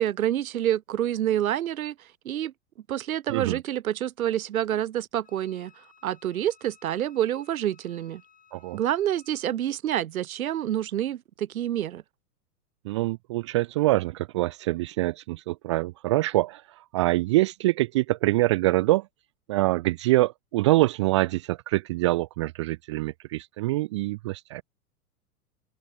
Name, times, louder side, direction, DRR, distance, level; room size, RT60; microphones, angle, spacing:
voice 1, 0.0-1.9 2.2-2.5 2.9-5.7 6.0-8.2 8.7-12.0, right 11 dB, 65° right, 1.4 m, -27 dB
Wind instrument woodwind instrument, 5.2-9.5, left 7 dB, 20° left, 7.4 m, -59 dB
voice 2, 12.8-19.1 19.5-24.6, right 18 dB, 20° right, 0.4 m, -25 dB
open air
figure-of-eight pair, 105°, 46 cm